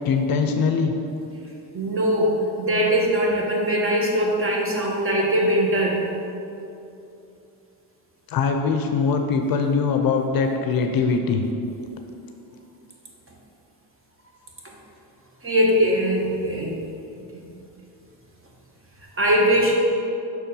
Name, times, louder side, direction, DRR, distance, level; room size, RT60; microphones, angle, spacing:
voice 1, 0.0-0.9 8.3-11.5, left 5 dB, 50° left, 5 dB, 0.6 m, -22 dB
voice 2, 1.7-6.1 14.6-14.7 15.4-16.8 17.3-17.4 19.2-19.7, equal, 30° right, -1 dB, 1.4 m, -21 dB
6.1 x 4.4 x 5.4 m, 2.7 s
cardioid pair, 90°, 45 cm